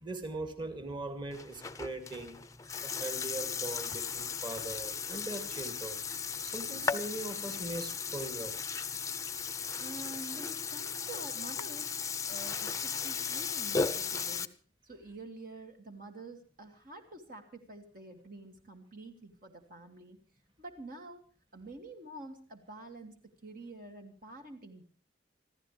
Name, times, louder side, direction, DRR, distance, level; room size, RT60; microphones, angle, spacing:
voice 1, 0.0-2.4 2.8-6.0 6.4-8.6, right 2 dB, 25° right, 7 dB, 2.4 m, -40 dB
Burping eructation, 1.3-14.5, left 5 dB, 20° left, 0.8 m, -36 dB
voice 2, 9.8-12.0 12.3-14.6 14.8-20.2 20.6-21.2 21.5-24.8, right 2 dB, 50° right, 4 dB, 2.3 m, -48 dB
26.0 x 15.0 x 3.3 m, 0.38 s
head